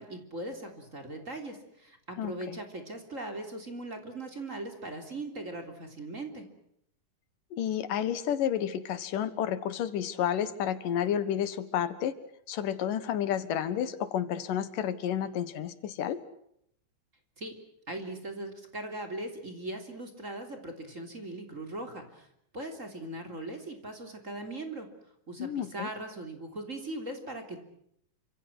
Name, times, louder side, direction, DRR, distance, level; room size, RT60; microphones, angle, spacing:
voice 1, 0.0-6.5 17.4-17.5 17.9-22.3 22.5-24.9 25.3-27.6, right 1 dB, 25° right, 5 dB, 3.5 m, -39 dB
voice 2, 2.2-2.6 7.5-12.1 12.5-16.2 25.4-25.9, left 9 dB, 85° left, 13 dB, 3.1 m, -31 dB
28.5 x 26.0 x 6.2 m, 0.72 s
omnidirectional pair, 3.7 m